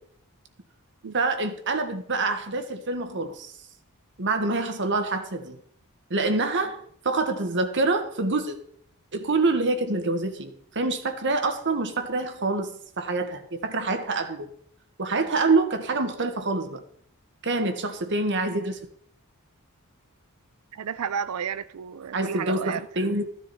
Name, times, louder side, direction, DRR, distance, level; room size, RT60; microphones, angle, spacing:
voice 1, 1.1-3.5 4.2-5.6 6.1-8.6 9.1-14.5 15.0-16.8 17.4-18.8 22.1-23.2, right 3 dB, 55° right, 1.5 m, -26 dB
voice 2, 20.7-22.9, right 7 dB, 75° right, 0.5 m, -32 dB
14.5 x 10.5 x 4.2 m
head